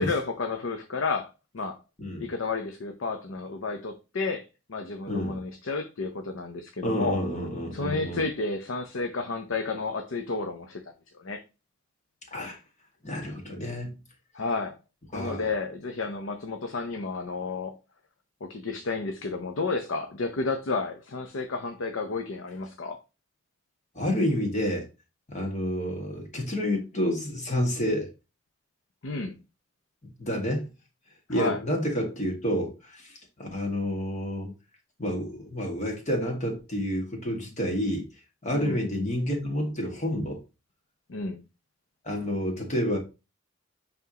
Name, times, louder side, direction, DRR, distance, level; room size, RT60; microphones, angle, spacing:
voice 1, 0.0-1.8 2.2-7.2 7.7-10.8 11.2-11.4 14.3-14.8 15.1-17.7 18.4-23.0 29.0-29.4 31.3-31.6 38.5-38.8 41.1-41.4, left 3 dB, 85° left, 0.7 m, -31 dB
voice 2, 2.0-2.3 5.1-5.4 6.8-8.3 12.3-12.6 13.0-14.0 15.1-15.5 23.9-24.9 25.3-28.1 30.0-30.7 31.3-34.5 35.0-38.1 38.4-40.4 42.0-43.0, equal, 40° left, 1.9 m, -29 dB
9.2 x 3.6 x 2.9 m
head